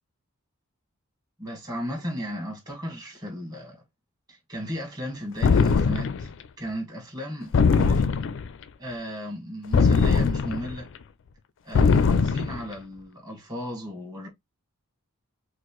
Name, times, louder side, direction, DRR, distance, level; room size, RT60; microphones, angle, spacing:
voice 1, 1.4-3.8 4.3-6.3 6.6-8.1 8.8-10.9 11.6-14.3, equal, 15° right, 1.6 m, -35 dB
sound 1, 5.4-6.3 7.5-8.5 9.7-10.8 11.7-12.6, left 5 dB, 55° left, 0.4 m, -21 dB
4.5 x 2.1 x 3.0 m
head